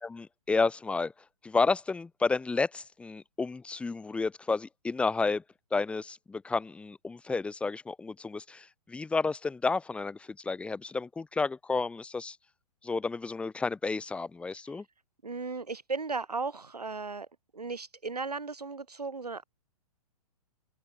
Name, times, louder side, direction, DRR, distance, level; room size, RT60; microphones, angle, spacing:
voice 1, 0.0-1.1 1.4-5.4 5.7-12.4 12.8-14.8, left 4 dB, 5° left, 0.7 m, -31 dB
voice 2, 15.2-17.3 17.5-19.4, right 4 dB, 80° right, 4.4 m, -36 dB
open air
figure-of-eight pair, 115°, 20 cm